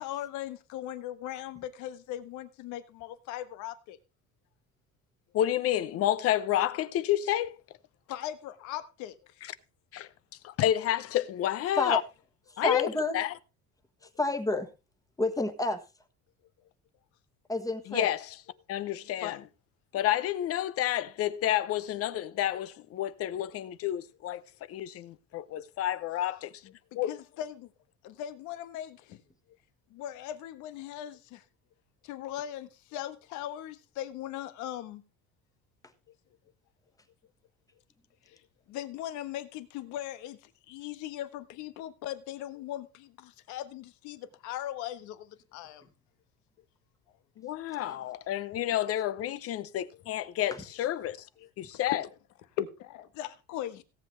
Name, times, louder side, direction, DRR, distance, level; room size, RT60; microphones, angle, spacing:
voice 1, 0.0-4.0 8.1-9.1 19.2-19.4 26.9-27.7 28.0-29.2 29.9-31.4 32.0-35.0 38.3-38.4 38.7-40.4 40.7-45.9 51.4-51.5 51.9-52.0 52.6-53.8, left 12 dB, 80° left, 1.3 m, -39 dB
voice 2, 5.3-7.6 9.4-9.5 9.9-10.1 10.4-12.0 12.6-13.3 17.9-18.4 18.7-19.4 19.9-24.4 24.7-26.5 26.9-27.1 47.4-51.2 51.6-52.0, left 12 dB, 55° left, 0.8 m, -30 dB
voice 3, 12.6-13.2 14.2-14.7 15.2-15.8 17.5-18.1, left 2 dB, 10° left, 1.4 m, -29 dB
17.5 x 7.9 x 3.3 m
cardioid pair, 140°, 29 cm